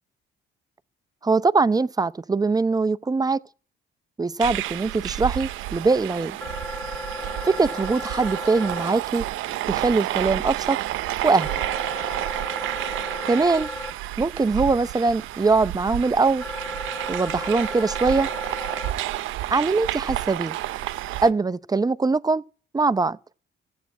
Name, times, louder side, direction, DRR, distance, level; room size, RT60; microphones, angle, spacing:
voice 1, 1.2-3.4 4.2-6.4 7.4-9.3 9.7-10.8 11.2-11.5 13.2-13.7 14.2-16.5 17.1-18.3 19.5-20.6 21.2-22.4 22.7-23.2, right 3 dB, 20° right, 0.7 m, -22 dB
sound 1, 4.4-21.3, right 15 dB, 90° right, 0.8 m, -30 dB
sound 2, 6.4-8.9 11.4-13.9 16.4-18.9, left 1 dB, 10° left, 2.5 m, -35 dB
15.0 x 8.3 x 9.3 m
cardioid pair, 90°, 20 cm